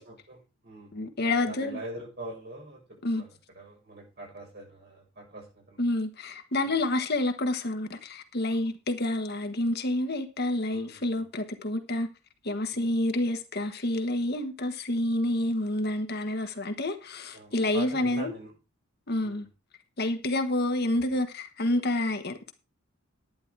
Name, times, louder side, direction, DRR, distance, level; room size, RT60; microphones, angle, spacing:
voice 1, 0.0-0.9 1.3-2.8 3.1-3.3 3.5-5.8 6.6-6.8 10.7-11.2 12.7-12.9 17.3-18.5 19.2-19.4, right 1 dB, 50° right, 6.8 m, -43 dB
voice 2, 0.9-1.8 3.0-3.2 5.8-12.1 12.4-18.3 19.1-19.5 20.0-22.5, left 1 dB, 50° left, 1.3 m, -28 dB
11.0 x 9.8 x 4.7 m
head